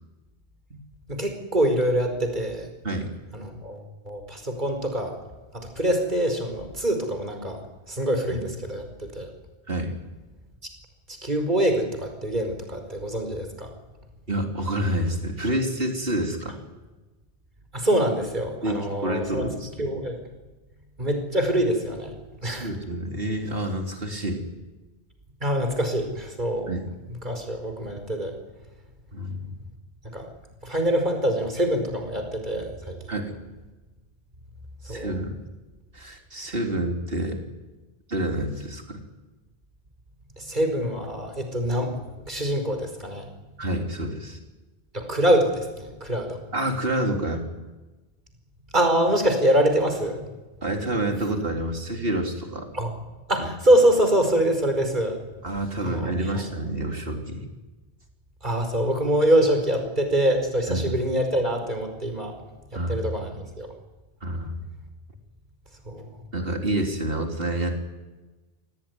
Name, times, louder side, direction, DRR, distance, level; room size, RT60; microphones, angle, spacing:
voice 1, 1.1-2.7 3.3-5.2 5.5-7.6 7.9-9.3 11.1-13.7 17.7-19.4 19.8-20.2 21.0-22.2 22.4-22.7 25.4-26.7 27.2-28.4 30.1-30.3 30.6-33.0 34.9-35.2 40.4-43.3 44.9-46.4 48.7-50.2 52.7-52.9 53.3-55.2 55.9-56.5 58.4-62.4 62.7-63.7 65.8-66.1, right 1 dB, 50° right, 5 dB, 5.2 m, -24 dB
voice 2, 14.3-16.5 18.6-19.9 22.4-24.4 26.7-26.9 29.1-29.6 33.1-33.3 34.9-35.3 35.9-37.4 38.1-39.0 43.6-44.4 46.5-47.5 50.6-52.7 53.4-53.5 55.4-57.5 60.7-60.9 62.7-63.1 64.2-64.6 66.3-67.8, right 1 dB, 65° right, 2 dB, 3.7 m, -28 dB
26.0 x 18.0 x 9.8 m, 1.2 s
omnidirectional pair, 1.0 m